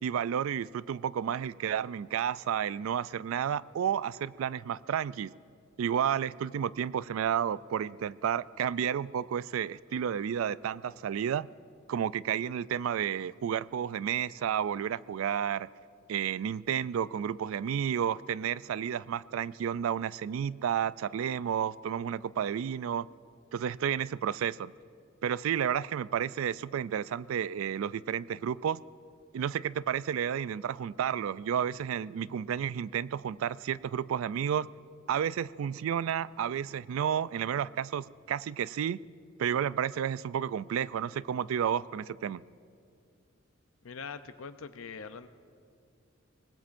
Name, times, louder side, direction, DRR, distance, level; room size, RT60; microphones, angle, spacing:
voice 1, 0.0-5.3 5.8-11.5 11.9-15.7 16.1-23.1 23.5-24.7 25.2-28.8 29.3-34.7 35.1-39.0 39.4-42.4, right 8 dB, 85° right, 19 dB, 0.3 m, -31 dB
voice 2, 43.8-45.3, left 5 dB, 85° left, 11 dB, 0.6 m, -42 dB
25.5 x 20.0 x 2.6 m, 2.3 s
head